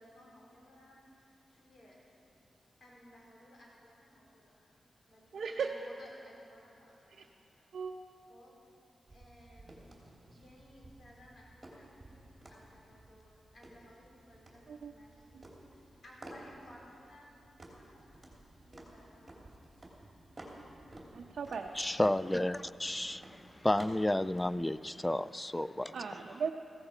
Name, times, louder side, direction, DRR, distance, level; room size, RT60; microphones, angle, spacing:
voice 1, 0.0-2.1 2.8-4.7 5.1-7.7 8.3-8.5 9.1-9.9 10.3-19.9, left 1 dB, 65° left, -3 dB, 4.3 m, -59 dB
voice 2, 5.3-5.7 7.2-7.3 7.7-7.9 14.7-14.9 15.3-15.4 21.1-21.7 25.9-26.5, right 6 dB, 75° right, 2 dB, 0.7 m, -37 dB
sound 1, 9.1-24.7, right 1 dB, 25° right, 3.1 m, -54 dB
voice 3, 21.8-26.0, left 1 dB, 15° left, 17 dB, 0.3 m, -32 dB
15.5 x 14.5 x 5.0 m, 2.7 s
cardioid pair, 75°, 0 cm